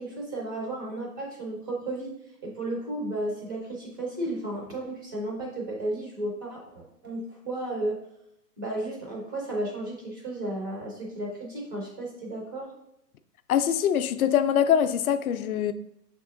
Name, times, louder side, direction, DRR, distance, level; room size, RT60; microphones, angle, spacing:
voice 1, 0.0-2.1 2.4-8.0 8.6-12.7, right 1 dB, 15° right, 0.4 m, -33 dB
voice 2, 13.5-15.7, left 9 dB, 60° left, 0.5 m, -23 dB
6.0 x 3.5 x 2.5 m
hypercardioid pair, 125°, 49 cm